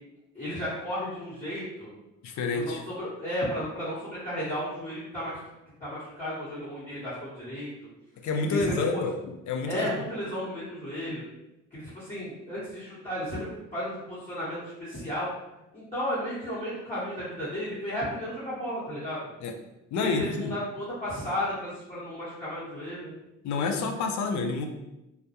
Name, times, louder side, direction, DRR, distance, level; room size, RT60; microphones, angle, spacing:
voice 1, 0.3-1.9 2.5-5.4 5.8-7.7 8.5-9.2 9.6-11.2 11.7-15.3 15.7-19.2 20.0-23.1, equal, 20° left, -12 dB, 0.9 m, -34 dB
voice 2, 2.2-2.8 8.2-9.9 19.4-19.5 19.9-20.5 23.4-24.7, left 3 dB, 70° left, 4 dB, 0.4 m, -28 dB
2.2 x 2.0 x 2.8 m, 0.94 s
cardioid pair, 90°, 30 cm